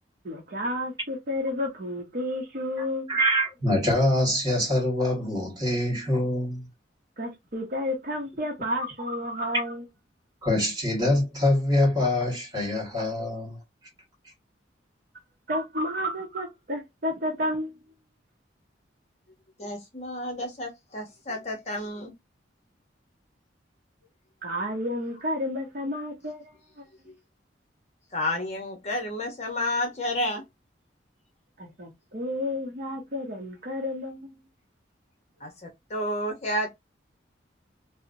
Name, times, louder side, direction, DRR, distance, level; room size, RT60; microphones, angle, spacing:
voice 1, 0.2-3.2 7.2-9.8 15.5-17.8 24.4-26.9 31.6-34.4, left 1 dB, 50° right, 0.7 m, -31 dB
voice 2, 3.1-6.6 10.4-13.6, left 1 dB, 20° right, 1.6 m, -24 dB
voice 3, 19.6-22.1 28.1-30.4 35.4-36.7, left 1 dB, 35° left, 0.8 m, -31 dB
2.8 x 2.0 x 2.5 m
head